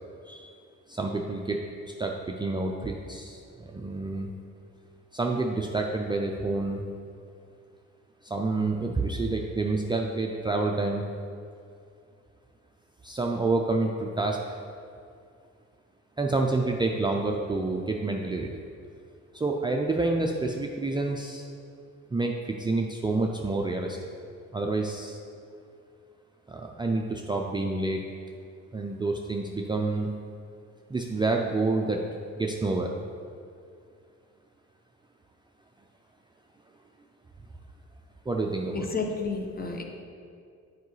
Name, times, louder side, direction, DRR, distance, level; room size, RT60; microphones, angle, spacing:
voice 1, 0.9-1.6 2.0-4.3 5.1-6.8 8.2-11.1 13.0-14.4 16.2-18.5 19.3-21.4 22.1-24.0 24.5-25.2 26.5-28.0 28.7-30.1 30.9-32.0 32.4-32.9 38.3-38.9, right 3 dB, 15° right, 1 dB, 0.4 m, -28 dB
voice 2, 38.7-39.8, left 4 dB, 30° left, 3 dB, 0.8 m, -31 dB
8.0 x 4.8 x 3.2 m, 2.4 s
cardioid pair, 90°, 30 cm